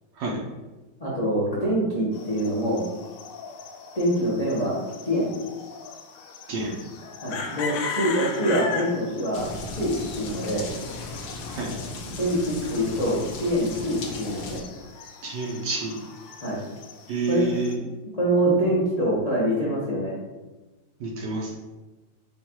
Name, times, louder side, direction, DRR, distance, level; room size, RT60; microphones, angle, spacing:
voice 1, 1.0-2.8 3.9-4.8 5.0-5.3 7.2-10.7 12.0-14.6 16.4-16.6 17.3-17.5 17.8-17.9 18.2-20.2, equal, 45° left, -8 dB, 0.5 m, -25 dB
sound 1, 2.1-17.8, left 5 dB, 85° left, 1.5 m, -38 dB
sound 2, 9.3-14.6, left 2 dB, 70° left, 1.3 m, -37 dB
voice 2, 15.2-15.9 17.1-17.8 21.0-21.5, right 3 dB, 65° right, -2 dB, 1.2 m, -28 dB
4.5 x 2.5 x 4.4 m, 1.1 s
omnidirectional pair, 2.3 m